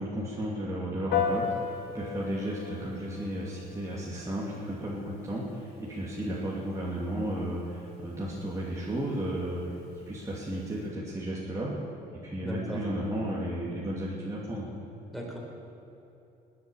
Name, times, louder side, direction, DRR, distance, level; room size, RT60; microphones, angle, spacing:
voice 1, 0.0-11.7 12.1-14.7, right 1 dB, 20° right, -6 dB, 2.6 m, -34 dB
Piano, 1.1-10.9, left 7 dB, 75° left, 1.7 m, -38 dB
voice 2, 12.4-12.8 15.1-15.4, equal, ahead, -2 dB, 4.1 m, -36 dB
20.0 x 8.2 x 7.1 m, 2.9 s
cardioid pair, 110°, 17 cm